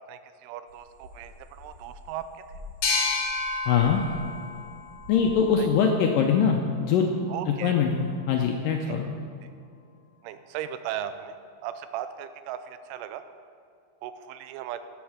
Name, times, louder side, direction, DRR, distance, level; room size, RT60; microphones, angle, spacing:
voice 1, 0.1-2.4 5.6-5.7 7.3-7.7 8.9-9.0 10.2-11.4 11.6-13.2 14.0-14.8, right 10 dB, 90° right, 11 dB, 2.7 m, -37 dB
sound 1, 0.7-4.3 4.5-5.7, left 1 dB, 65° right, 3.2 m, -46 dB
sound 2, 2.8-6.2, left 3 dB, 55° left, 1.4 m, -31 dB
voice 2, 3.7-4.0 5.1-9.2, left 6 dB, 80° left, 2 dB, 2.0 m, -23 dB
12.0 x 7.3 x 6.2 m, 2.5 s
omnidirectional pair, 4.6 m